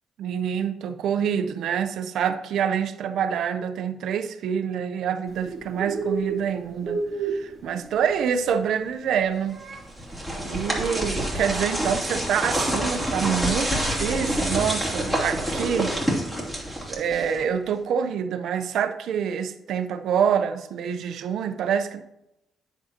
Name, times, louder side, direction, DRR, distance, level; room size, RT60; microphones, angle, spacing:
voice 1, 0.2-9.6 10.4-15.9 16.9-22.0, right 7 dB, 75° right, 8 dB, 0.7 m, -26 dB
Bird, 5.3-17.4, right 4 dB, 40° right, 2.0 m, -36 dB
sound 1, 9.7-17.5, equal, 5° left, 3.0 m, -27 dB
9.8 x 7.9 x 2.9 m, 0.86 s
cardioid pair, 90°, 0 cm